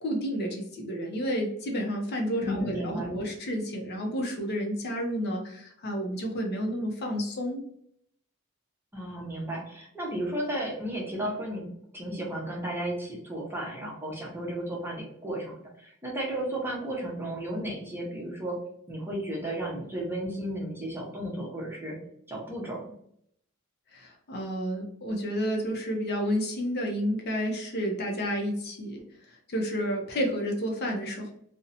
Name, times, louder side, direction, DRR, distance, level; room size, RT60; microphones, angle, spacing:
voice 1, 0.0-7.6 23.9-29.0 29.5-31.3, equal, 50° left, 2 dB, 0.5 m, -30 dB
voice 2, 2.4-3.2 8.9-18.6 18.9-22.0 22.3-22.9, right 1 dB, 10° right, -3 dB, 0.7 m, -34 dB
2.5 x 2.0 x 2.7 m, 0.69 s
head